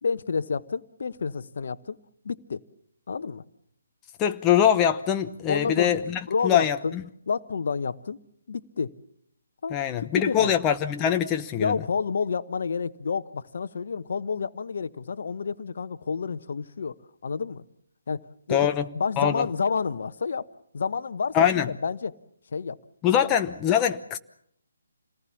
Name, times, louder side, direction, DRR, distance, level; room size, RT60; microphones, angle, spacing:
voice 1, 0.0-2.0 2.2-2.6 3.1-3.4 5.5-6.0 6.3-6.9 7.3-8.2 8.5-8.9 9.6-9.8 10.2-10.5 11.6-17.6 18.1-18.7 18.9-20.5 20.7-21.4 21.8-22.2 22.5-22.8, left 5 dB, 55° left, 1.1 m, -29 dB
voice 2, 4.2-7.0 9.7-11.8 18.5-18.9 19.2-19.5 21.3-21.7 23.0-24.2, left 9 dB, 20° left, 0.9 m, -23 dB
27.5 x 19.0 x 7.2 m
figure-of-eight pair, 140°, 0 cm